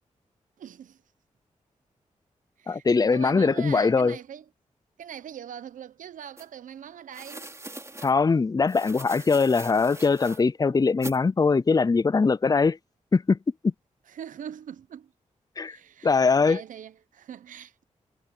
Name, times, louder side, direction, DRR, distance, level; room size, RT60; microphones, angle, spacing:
voice 1, 0.6-1.0 2.6-4.4 5.0-7.5 14.1-15.1 15.6-17.8, right 9 dB, 85° right, 0.8 m, -42 dB
voice 2, 2.7-4.2 8.0-12.8 13.1-13.4 13.6-13.7 15.6-15.8 16.0-16.6, left 4 dB, 30° left, 0.5 m, -22 dB
sound 1, 6.4-6.5 7.1-8.1 8.7-10.4 11.0-11.2, right 2 dB, 20° right, 2.7 m, -41 dB
cardioid pair, 55°, 13 cm